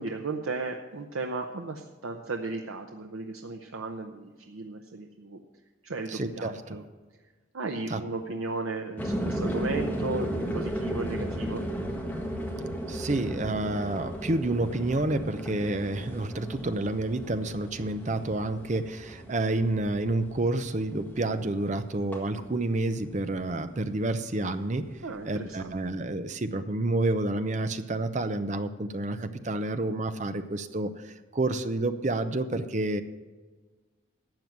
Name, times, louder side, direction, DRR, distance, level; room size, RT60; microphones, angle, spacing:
voice 1, 0.0-5.4 5.8-6.8 7.5-11.6 25.0-25.9, right 3 dB, 85° right, 4 dB, 0.8 m, -35 dB
voice 2, 6.2-6.5 7.9-8.0 12.9-24.8 25.3-33.0, right 2 dB, 35° right, 10 dB, 0.6 m, -29 dB
sound 1, 9.0-23.5 23.8-24.4, equal, 10° left, 1.6 m, -35 dB
12.5 x 7.8 x 5.9 m, 1.3 s
head